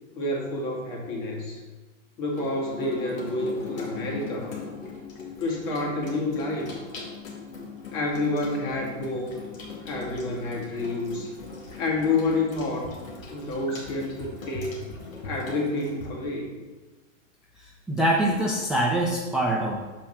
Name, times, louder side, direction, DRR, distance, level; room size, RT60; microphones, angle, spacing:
voice 1, 0.2-1.6 2.2-4.5 5.4-6.7 7.9-9.4 9.8-11.3 11.8-12.9 13.3-14.8 15.2-16.5, left 2 dB, 45° left, -2 dB, 2.3 m, -29 dB
Water tap faucet / Sink (filling or washing), 2.3-16.1, left 4 dB, 90° left, 2.2 m, -39 dB
voice 2, 17.9-19.8, right 1 dB, ahead, -3 dB, 0.4 m, -24 dB
6.1 x 4.6 x 5.8 m, 1.2 s
hypercardioid pair, 125°, 39 cm